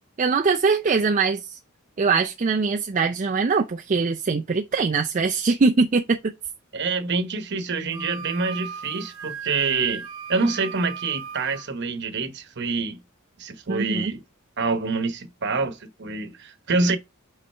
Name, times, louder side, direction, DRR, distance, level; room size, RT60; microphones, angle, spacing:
voice 1, 0.2-1.6 2.0-6.3 13.7-14.1, right 4 dB, 35° right, 0.4 m, -22 dB
voice 2, 6.7-10.0 10.3-13.0 13.4-14.2 14.6-17.0, right 4 dB, 55° right, 1.0 m, -26 dB
Wind instrument woodwind instrument, 7.9-11.7, right 6 dB, 85° right, 0.9 m, -36 dB
5.5 x 4.0 x 4.3 m
head